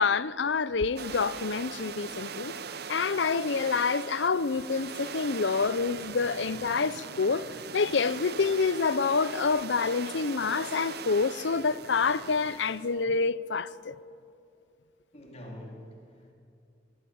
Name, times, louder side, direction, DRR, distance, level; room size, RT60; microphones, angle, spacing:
voice 1, 0.0-2.5 2.9-7.5 7.7-14.0, left 4 dB, 75° left, 0.6 m, -27 dB
sound 1, 1.0-13.0, right 6 dB, 60° right, 0.8 m, -40 dB
voice 2, 15.1-16.3, left 1 dB, 35° left, 3.5 m, -45 dB
23.5 x 20.0 x 8.7 m
head